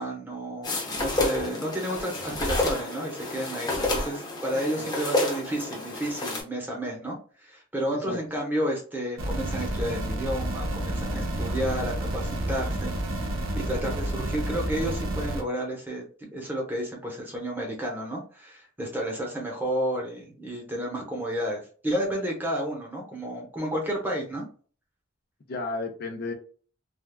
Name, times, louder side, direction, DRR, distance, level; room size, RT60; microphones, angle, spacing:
voice 1, 0.0-12.9 13.5-24.4, equal, 10° right, -1 dB, 0.8 m, -31 dB
sound 1, 0.6-6.4, left 2 dB, 20° left, 0.8 m, -29 dB
voice 2, 7.9-8.2 25.5-26.3, left 3 dB, 50° left, 2 dB, 0.5 m, -33 dB
sound 2, 9.2-15.4, right 1 dB, 90° right, 0.7 m, -30 dB
3.4 x 2.3 x 2.2 m, 0.41 s
head